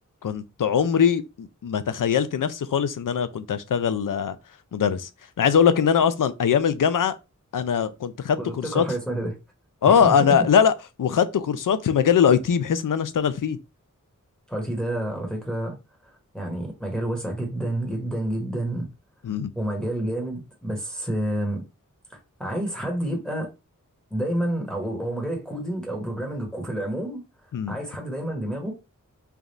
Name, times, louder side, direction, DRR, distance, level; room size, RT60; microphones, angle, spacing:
voice 1, 0.2-4.4 4.7-5.1 5.4-7.2 7.5-8.8 9.8-13.6 19.2-19.5 27.5-27.8, left 7 dB, 75° left, 0.5 m, -21 dB
voice 2, 8.4-9.3 9.8-10.4 14.5-15.8 16.3-18.9 19.5-21.6 22.1-23.5 24.1-27.2 27.7-28.7, right 1 dB, 5° left, 1.1 m, -29 dB
3.4 x 2.4 x 4.0 m
wide cardioid pair, 65°, 32 cm